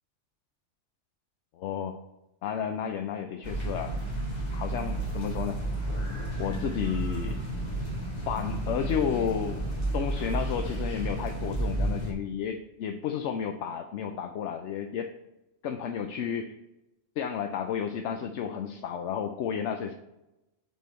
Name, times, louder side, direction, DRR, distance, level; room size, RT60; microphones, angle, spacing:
voice 1, 1.5-2.0 2.4-4.0 4.5-5.6 6.4-7.4 8.3-9.6 9.9-15.1 15.6-16.6 17.2-19.9, left 8 dB, 75° left, 6 dB, 0.9 m, -32 dB
sound 1, 3.4-12.1, right 1 dB, 35° left, 2.0 m, -31 dB
8.1 x 4.5 x 4.3 m, 0.95 s
omnidirectional pair, 1.3 m